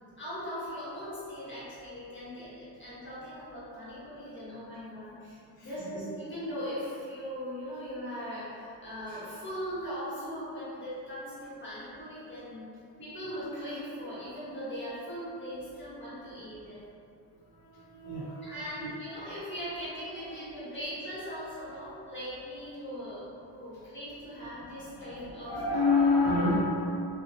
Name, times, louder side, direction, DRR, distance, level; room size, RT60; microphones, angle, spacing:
voice 1, 0.2-5.4 5.6-12.7 13.0-16.8 18.4-25.6, equal, 25° left, -11 dB, 1.3 m, -39 dB
voice 2, 17.7-18.5 18.8-18.9 25.1-26.6, left 3 dB, 55° left, -9 dB, 1.1 m, -27 dB
2.7 x 2.4 x 2.7 m, 2.6 s
cardioid pair, 95°, 44 cm